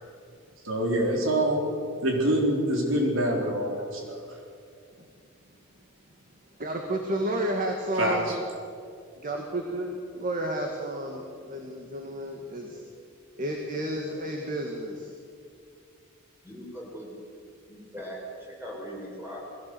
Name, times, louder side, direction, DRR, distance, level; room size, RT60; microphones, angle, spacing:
voice 1, 0.6-1.6 2.0-4.4 8.0-8.4, right 1 dB, 70° right, 0 dB, 3.8 m, -25 dB
voice 2, 6.6-8.3 9.2-12.8 13.4-15.1, right 1 dB, 40° right, 2 dB, 1.9 m, -31 dB
voice 3, 16.4-17.1 17.7-19.4, equal, 10° right, -3 dB, 5.6 m, -40 dB
21.0 x 17.0 x 7.8 m, 2.3 s
head